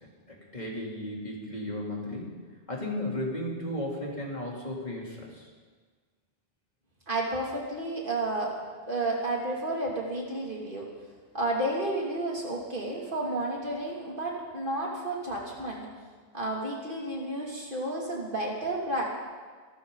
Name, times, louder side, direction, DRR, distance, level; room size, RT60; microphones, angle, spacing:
voice 1, 0.3-2.3 2.7-5.5, left 1 dB, 40° left, -4 dB, 3.5 m, -34 dB
voice 2, 7.1-8.6 8.9-10.9 11.3-15.9 16.3-19.0, right 2 dB, 50° right, -2 dB, 2.9 m, -31 dB
26.5 x 13.5 x 4.0 m, 1.5 s
omnidirectional pair, 1.1 m